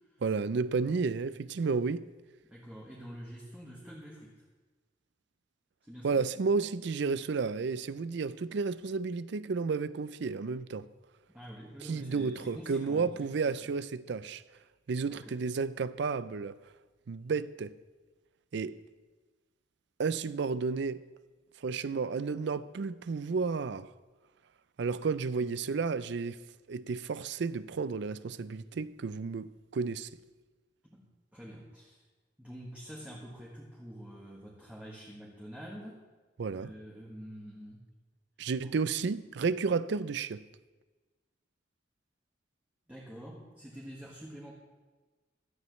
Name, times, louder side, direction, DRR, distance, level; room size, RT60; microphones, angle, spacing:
voice 1, 0.2-2.1 6.0-10.9 11.9-14.4 14.9-16.6 17.1-17.7 18.5-18.8 20.0-21.0 21.6-23.9 24.8-26.4 26.7-30.1 36.4-36.7 38.4-40.4, right 4 dB, 65° right, 0.4 m, -32 dB
voice 2, 2.4-4.4 5.8-6.2 11.3-13.6 15.1-15.4 30.8-32.0 32.4-36.0 36.5-37.8 38.6-38.7 42.9-44.5, equal, 10° right, 1.6 m, -47 dB
16.0 x 12.5 x 3.2 m
head